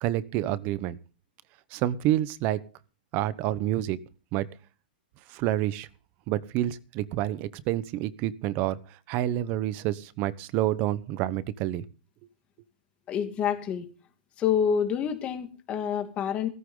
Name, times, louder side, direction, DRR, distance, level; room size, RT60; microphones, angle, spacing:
voice 1, 0.0-1.0 1.7-2.6 3.1-4.0 4.3-4.5 5.3-5.9 6.3-11.8, right 13 dB, 35° right, 17 dB, 1.1 m, -28 dB
voice 2, 13.1-13.9 14.4-16.5, left 8 dB, 25° left, 6 dB, 2.5 m, -27 dB
17.0 x 15.0 x 3.9 m, 0.36 s
hypercardioid pair, 150°, 5 cm